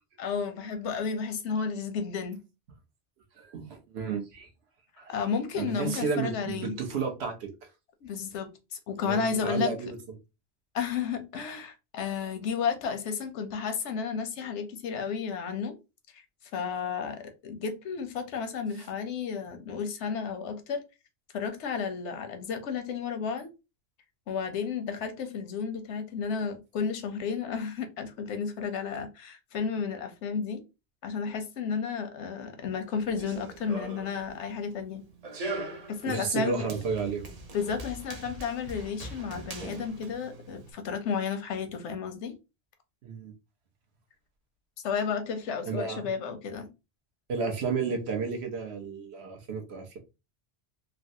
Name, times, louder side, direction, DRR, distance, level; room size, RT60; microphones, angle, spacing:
voice 1, 0.2-2.4 5.1-6.7 8.0-9.7 10.7-15.8 16.1-16.2 16.5-20.8 21.3-23.5 24.3-30.6 31.0-35.0 35.9-36.7 37.5-42.4 44.8-46.7, left 6 dB, 85° left, 1.0 m, -32 dB
voice 2, 3.4-4.5 5.0-5.2 5.5-7.7 9.1-10.0 36.0-37.4 43.0-43.3 45.7-46.1 47.3-50.0, right 5 dB, 70° right, 1.0 m, -32 dB
Run, 33.0-40.7, right 2 dB, 45° right, 0.5 m, -41 dB
3.3 x 2.1 x 2.6 m
omnidirectional pair, 1.1 m